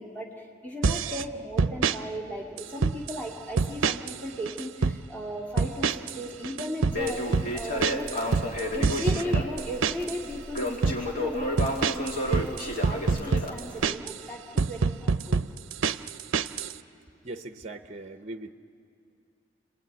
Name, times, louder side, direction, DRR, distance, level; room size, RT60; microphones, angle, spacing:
voice 1, 0.0-8.1 8.7-15.4, equal, 10° left, -3 dB, 2.3 m, -36 dB
sound 1, 0.8-1.2 1.6-2.0 2.6-3.2 3.6-4.2 4.5-5.0 5.6-6.2 6.4-10.2 10.6-11.0 11.6-14.2 14.6-16.7, right 5 dB, 85° right, 0.6 m, -26 dB
Crackle, 6.9-13.9, left 1 dB, 45° left, 2.9 m, -32 dB
voice 2, 17.2-18.5, right 2 dB, 35° right, 7 dB, 0.8 m, -39 dB
30.0 x 20.5 x 9.2 m, 2.6 s
head